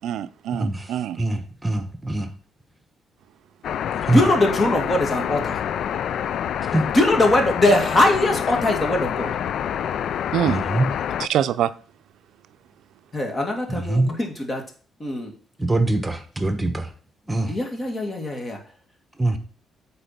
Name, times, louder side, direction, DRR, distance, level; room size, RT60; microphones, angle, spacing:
voice 1, 0.0-1.2 10.3-10.7 11.2-11.7, right 11 dB, 80° right, 0.5 m, -24 dB
voice 2, 0.5-0.9 1.2-2.3 4.0-4.2 6.7-6.8 10.5-10.9 13.7-14.1 15.6-16.9 17.3-17.5 19.2-19.4, right 2 dB, 15° right, 1.2 m, -23 dB
sound 1, 3.6-11.3, left 9 dB, 70° left, 0.3 m, -27 dB
voice 3, 4.1-5.6 6.9-9.3 13.1-14.6 15.0-15.3 17.5-18.6, left 1 dB, 30° left, 2.3 m, -21 dB
8.1 x 4.6 x 5.8 m
cardioid pair, 90°, 0 cm